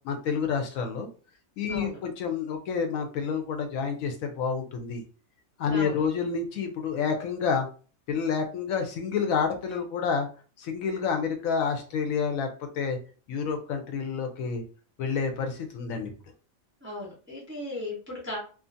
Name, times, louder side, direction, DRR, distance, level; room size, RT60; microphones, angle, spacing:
voice 1, 0.0-1.1 1.6-5.0 5.6-7.7 8.1-10.3 10.6-12.5 12.8-13.0 13.3-14.6 15.0-16.1, left 6 dB, 80° left, 5 dB, 1.0 m, -29 dB
voice 2, 1.7-2.0 5.7-6.0 16.8-18.4, left 1 dB, 15° right, -4 dB, 0.5 m, -36 dB
2.5 x 2.4 x 2.6 m, 0.38 s
omnidirectional pair, 1.4 m